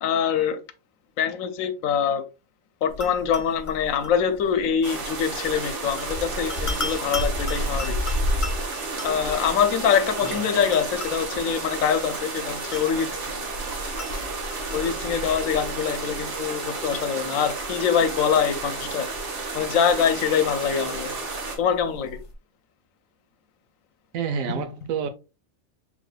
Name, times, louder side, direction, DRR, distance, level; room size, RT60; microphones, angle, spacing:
voice 1, 0.0-0.6 1.2-2.3 2.8-8.0 9.0-13.4 14.7-19.1 19.5-21.1 21.6-22.2, left 7 dB, 80° left, 1.0 m, -24 dB
sound 1, 2.9-22.3, left 1 dB, 60° left, 0.3 m, -34 dB
sound 2, 4.8-21.6, right 3 dB, 60° right, 1.3 m, -32 dB
voice 2, 24.1-25.1, right 6 dB, 85° right, 1.1 m, -29 dB
4.8 x 3.6 x 2.2 m
omnidirectional pair, 1.4 m